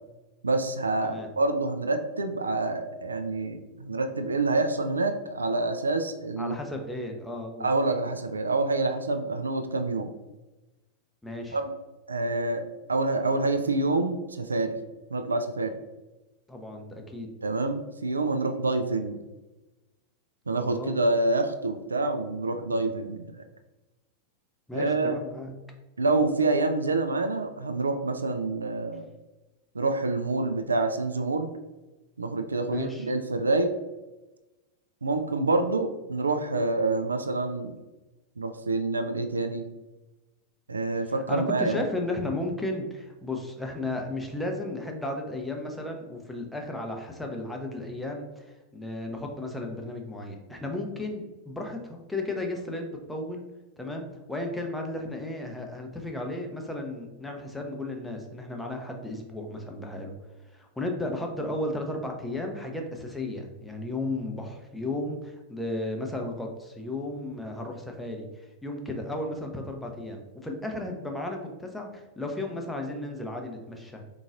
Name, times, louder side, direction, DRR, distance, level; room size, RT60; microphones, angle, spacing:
voice 1, 0.4-6.6 7.6-10.1 11.5-11.7 12.1-14.8 15.1-15.8 17.4-19.2 20.5-23.4 24.7-25.2 26.0-29.1 29.7-31.5 32.2-33.7 35.0-37.7 38.4-39.7 40.7-41.8, right 2 dB, 75° right, 7 dB, 0.3 m, -27 dB
voice 2, 6.4-7.7 11.2-11.6 16.5-17.3 20.6-21.0 24.7-25.5 32.6-33.1 41.3-53.4 53.8-60.1 60.5-74.0, left 2 dB, 5° left, 2 dB, 0.7 m, -34 dB
3.8 x 3.8 x 2.4 m, 1.1 s
figure-of-eight pair, 90°, 0 cm